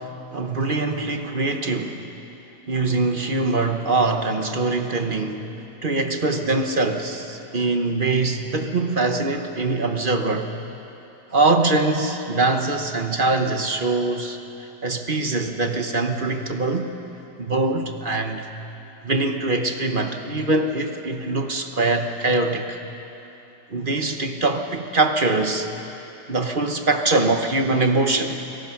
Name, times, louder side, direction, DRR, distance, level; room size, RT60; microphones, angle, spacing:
voice 1, 0.0-2.1 2.7-5.4 5.8-10.5 11.3-16.9 17.4-18.5 19.0-22.8 23.7-25.7 26.3-28.4, right 2 dB, 35° right, 5 dB, 1.0 m, -23 dB
28.5 x 18.5 x 5.9 m, 2.9 s
omnidirectional pair, 1.9 m